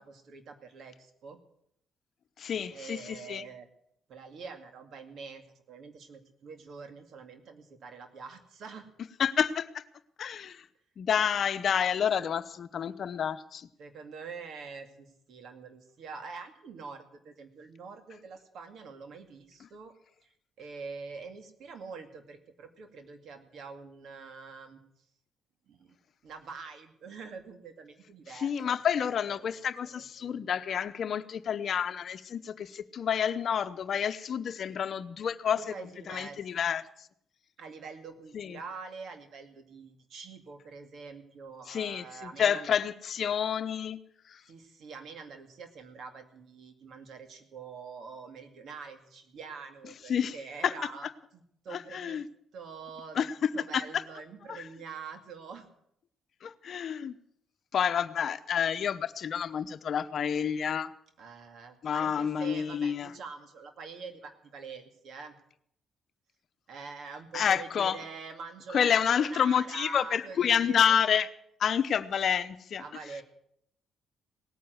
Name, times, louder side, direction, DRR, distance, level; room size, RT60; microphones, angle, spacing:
voice 1, 0.0-1.4 2.7-3.7 4.1-8.9 13.8-19.9 20.2-20.3 20.6-24.8 25.7-25.9 26.2-28.8 29.2-29.5 30.0-30.6 35.5-36.4 37.6-42.8 44.5-52.2 52.5-53.3 53.5-55.7 61.2-65.4 66.7-71.0 72.8-73.2, right 5 dB, 70° right, 7 dB, 2.3 m, -45 dB
voice 2, 2.4-3.4 9.2-9.8 10.2-10.6 11.0-13.7 28.3-35.6 36.1-36.8 38.3-38.6 41.7-44.0 44.3-44.4 50.1-50.3 50.6-50.7 51.7-52.3 53.1-53.8 54.5-54.6 56.4-57.1 57.7-60.9 61.8-63.1 67.3-68.0 68.7-71.3 71.6-72.8, left 8 dB, 60° left, 12 dB, 0.8 m, -29 dB
18.0 x 9.4 x 7.9 m, 0.71 s
cardioid pair, 90°, 0 cm